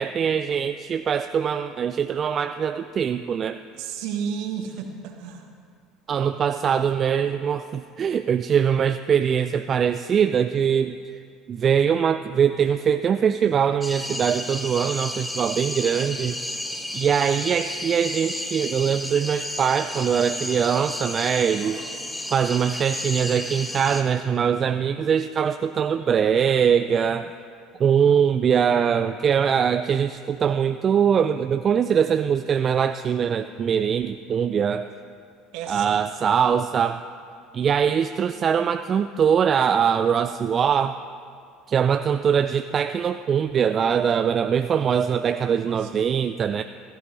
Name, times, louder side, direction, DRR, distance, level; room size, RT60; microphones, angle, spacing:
voice 1, 0.0-3.6 6.1-11.2 11.5-16.4 16.9-21.8 22.3-27.3 27.8-34.9 35.7-37.0 37.5-41.0 41.7-46.6, right 7 dB, 40° right, 10 dB, 0.4 m, -22 dB
voice 2, 3.7-5.5 6.1-6.3 21.6-22.1 28.5-28.6 35.5-35.9 45.6-46.1, right 7 dB, 60° right, 4 dB, 1.6 m, -33 dB
sound 1, 13.8-24.0, left 1 dB, 10° left, 1.3 m, -32 dB
16.0 x 14.0 x 4.1 m, 2.3 s
figure-of-eight pair, 65°, 0 cm